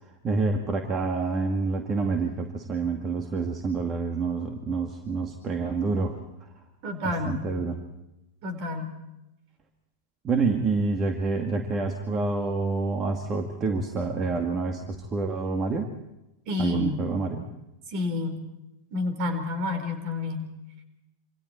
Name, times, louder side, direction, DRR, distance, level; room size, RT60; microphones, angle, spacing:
voice 1, 0.2-6.2 7.3-7.8 10.2-15.9 16.6-17.5, right 4 dB, 25° right, 4 dB, 2.3 m, -27 dB
voice 2, 6.8-7.5 8.4-8.9 16.5-17.0 17.9-18.5 18.9-20.5, left 2 dB, 45° right, 8 dB, 4.8 m, -29 dB
28.0 x 26.5 x 4.6 m, 0.91 s
figure-of-eight pair, 90°, 0 cm